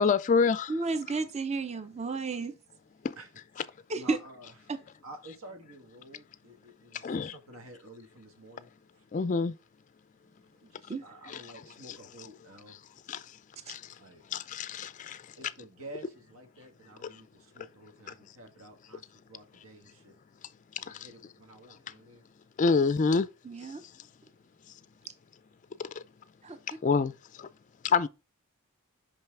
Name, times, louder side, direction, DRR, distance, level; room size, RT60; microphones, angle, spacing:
voice 1, 0.0-0.7 3.0-3.1 6.9-7.3 9.1-9.5 11.3-11.4 13.1-13.4 13.7-14.0 14.3-15.3 20.7-21.1 22.6-23.3 23.8-23.9 25.8-26.0 26.7-27.5 27.8-28.1, left 5 dB, 35° left, 0.3 m, -27 dB
voice 2, 0.7-2.5 3.9-4.2 4.7-4.8 10.9-11.0 13.7-13.8 23.4-23.8 26.4-26.6, right 3 dB, 30° right, 0.6 m, -32 dB
voice 3, 3.6-4.7 5.0-9.0 10.6-12.8 14.0-14.2 15.4-20.2 20.8-22.2, right 1 dB, 80° right, 1.5 m, -50 dB
5.6 x 5.4 x 3.3 m
head